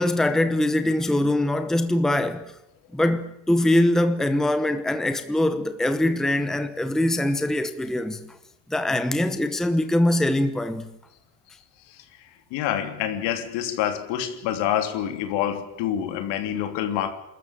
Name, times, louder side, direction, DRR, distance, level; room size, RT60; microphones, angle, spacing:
voice 1, 0.0-2.5 2.9-8.4 8.7-10.9, left 1 dB, ahead, 0.9 m, -23 dB
voice 2, 11.9-17.1, left 10 dB, 75° left, 3.2 m, -27 dB
28.5 x 13.5 x 9.0 m
cardioid pair, 175°, 43 cm